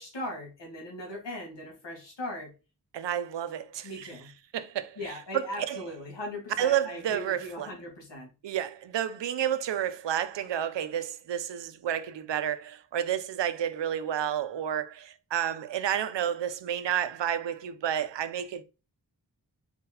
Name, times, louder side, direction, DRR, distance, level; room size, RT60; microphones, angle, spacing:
voice 1, 0.0-2.5 3.8-4.3 5.0-8.3, left 1 dB, 85° left, 1.8 m, -39 dB
voice 2, 2.9-4.1 4.5-5.8 6.6-7.7 8.4-18.6, right 10 dB, 85° right, 0.5 m, -30 dB
4.4 x 3.7 x 2.8 m
cardioid pair, 40°, 42 cm